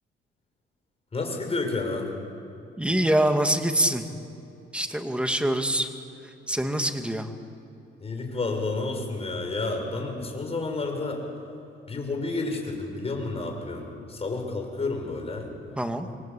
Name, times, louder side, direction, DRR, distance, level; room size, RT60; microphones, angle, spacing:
voice 1, 1.1-2.1 8.0-11.2 11.9-15.5, left 3 dB, 30° left, 2 dB, 6.4 m, -30 dB
voice 2, 2.8-4.0 4.7-5.9 6.5-7.3 15.8-16.1, right 1 dB, 5° right, 5 dB, 2.4 m, -24 dB
27.0 x 23.0 x 8.6 m, 2.7 s
cardioid pair, 90°, 20 cm